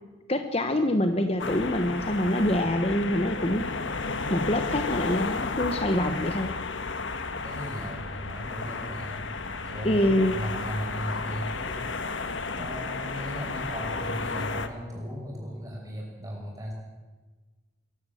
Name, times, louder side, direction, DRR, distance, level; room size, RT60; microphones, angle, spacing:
voice 1, 0.3-3.7 4.3-6.5 9.8-10.4, left 1 dB, 30° left, 7 dB, 1.1 m, -25 dB
sound 1, 1.4-14.7, left 3 dB, 75° left, 1.5 m, -33 dB
voice 2, 7.4-9.3 9.6-11.8 12.6-16.7, equal, 15° right, -1 dB, 6.1 m, -36 dB
23.5 x 15.5 x 7.8 m, 1.3 s
head